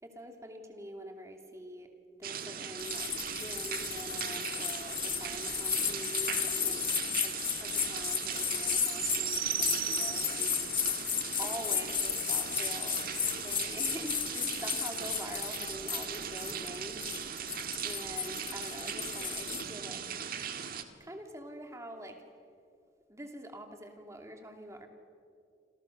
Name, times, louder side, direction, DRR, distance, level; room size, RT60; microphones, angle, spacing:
voice 1, 0.0-1.9 2.2-6.9 7.2-10.8 11.4-13.0 13.4-17.1 17.4-17.5 17.8-20.1 21.0-22.2 23.1-24.9, right 1 dB, 15° right, 4 dB, 2.8 m, -45 dB
sound 1, 2.2-20.8, right 8 dB, 55° right, 1.7 m, -38 dB
sound 2, 2.8-19.6, left 8 dB, 30° left, 1.7 m, -34 dB
27.5 x 27.5 x 6.7 m, 2.4 s
head